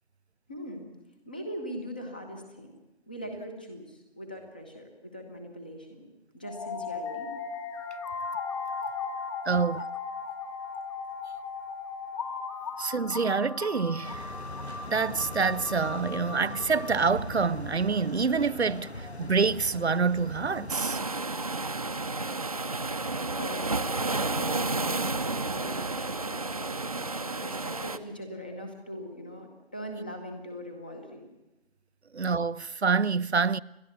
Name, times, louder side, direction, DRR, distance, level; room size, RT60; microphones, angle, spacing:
voice 1, 0.5-0.9 1.2-2.7 3.1-6.0 6.3-7.3 23.4-31.3, equal, 10° left, 0.9 m, -41 dB
sound 1, 6.4-17.4, left 5 dB, 30° left, 2.7 m, -37 dB
voice 2, 9.5-9.8 12.8-14.2 14.9-18.9 19.2-21.0 32.1-33.6, right 5 dB, 85° right, 0.6 m, -26 dB
sound 2, 14.0-20.8, left 1 dB, 90° left, 1.6 m, -40 dB
sound 3, 20.7-28.0, right 3 dB, 35° right, 0.8 m, -31 dB
29.5 x 11.5 x 8.1 m
figure-of-eight pair, 160°, 32 cm